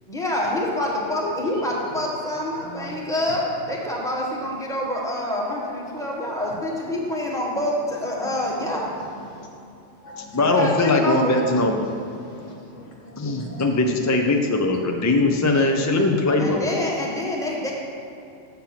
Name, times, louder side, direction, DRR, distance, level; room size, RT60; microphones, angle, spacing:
voice 1, 0.1-8.9 10.3-11.4 16.4-17.7, left 1 dB, 5° left, -3 dB, 1.2 m, -27 dB
voice 2, 1.2-2.0 2.6-3.0 3.3-3.4 7.1-7.2 8.2-8.4 8.6-9.5 10.0-10.4 10.7-10.8 11.4-13.6, left 1 dB, 80° left, -1 dB, 1.7 m, -39 dB
voice 3, 10.2-11.8 13.2-16.9, left 2 dB, 25° left, 3 dB, 0.4 m, -21 dB
7.1 x 6.9 x 5.8 m, 2.7 s
omnidirectional pair, 1.2 m